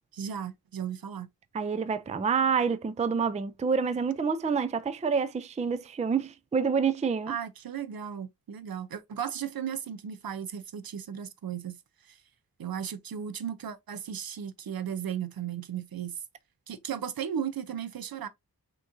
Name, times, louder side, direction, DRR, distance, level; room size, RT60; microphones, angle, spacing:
voice 1, 0.1-1.3 7.3-11.8 12.1-12.2 12.6-16.2 16.7-18.3, right 8 dB, 65° right, 0.6 m, -35 dB
voice 2, 1.5-7.3, right 6 dB, 20° right, 0.4 m, -28 dB
6.0 x 3.0 x 2.6 m
wide cardioid pair, 140°, 38 cm